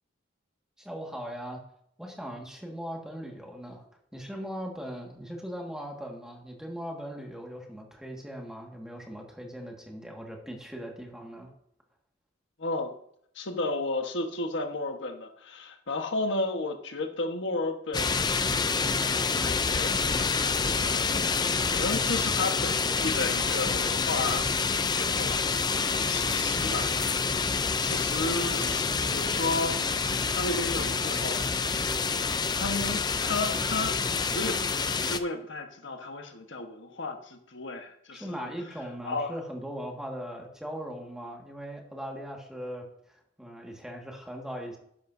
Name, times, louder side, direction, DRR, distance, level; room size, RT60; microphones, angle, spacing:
voice 1, 0.8-1.6 2.0-3.8 4.1-11.5 38.1-44.8, equal, 5° right, 0 dB, 1.8 m, -39 dB
voice 2, 12.6-12.9 13.3-18.9 19.4-21.2 21.7-25.4 26.1-26.9 27.8-29.8 30.3-31.4 32.5-34.0 34.3-38.5 39.0-39.3, left 3 dB, 65° left, 5 dB, 1.3 m, -33 dB
sound 1, 17.9-35.2, left 5 dB, 20° left, 0.5 m, -27 dB
12.0 x 10.5 x 2.7 m, 0.71 s
head